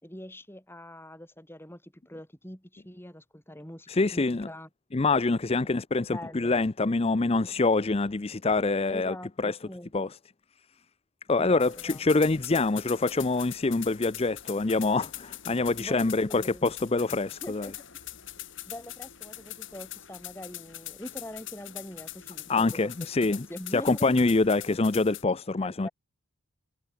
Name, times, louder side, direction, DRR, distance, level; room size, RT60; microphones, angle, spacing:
voice 1, 0.0-4.7 6.1-6.5 8.9-9.9 11.4-12.0 15.8-16.6 17.4-17.8 18.7-24.1 25.6-25.9, left 1 dB, 10° left, 4.3 m, -43 dB
voice 2, 3.9-4.5 4.9-9.6 9.9-10.1 11.3-17.7 22.5-23.5 23.7-25.9, left 3 dB, 25° left, 0.5 m, -25 dB
sound 1, 11.6-25.2, left 13 dB, 55° left, 3.9 m, -43 dB
head